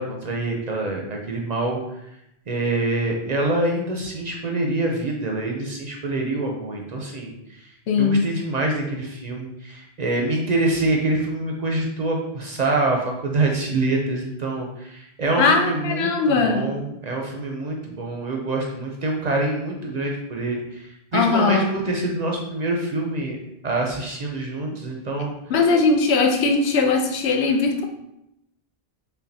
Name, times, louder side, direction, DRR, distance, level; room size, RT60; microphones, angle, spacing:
voice 1, 0.0-1.8 2.5-7.7 8.0-23.4 23.6-25.3, right 2 dB, 55° right, 0 dB, 0.5 m, -25 dB
voice 2, 7.9-8.2 15.4-16.6 21.1-21.7 25.5-27.8, left 4 dB, 85° left, 4 dB, 0.9 m, -19 dB
5.4 x 2.2 x 2.7 m, 0.83 s
omnidirectional pair, 1.1 m